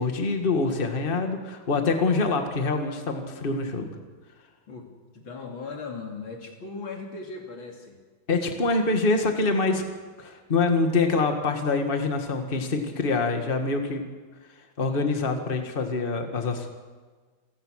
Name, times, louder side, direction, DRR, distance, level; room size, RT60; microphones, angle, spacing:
voice 1, 0.0-3.9 8.3-9.8 10.2-14.0 14.8-16.7, left 3 dB, 25° left, 5 dB, 1.9 m, -25 dB
voice 2, 5.1-8.0, left 4 dB, 80° left, 2 dB, 3.6 m, -38 dB
28.0 x 16.0 x 6.5 m, 1.4 s
omnidirectional pair, 2.2 m